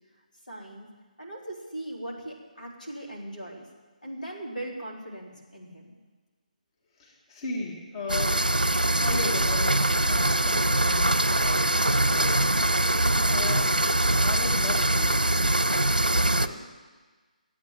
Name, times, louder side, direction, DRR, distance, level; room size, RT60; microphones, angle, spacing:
voice 1, 0.5-0.9 1.2-3.7 4.0-6.0 13.0-13.4 16.1-16.6, right 1 dB, 70° left, -1 dB, 3.7 m, -39 dB
voice 2, 7.0-8.4 9.0-12.8 13.3-13.6 14.1-15.5 16.3-16.4, left 3 dB, 30° left, -3 dB, 2.0 m, -36 dB
sound 1, 8.1-16.5, right 1 dB, 80° right, 0.9 m, -23 dB
13.0 x 9.0 x 9.0 m, 1.3 s
figure-of-eight pair, 145°, 5 cm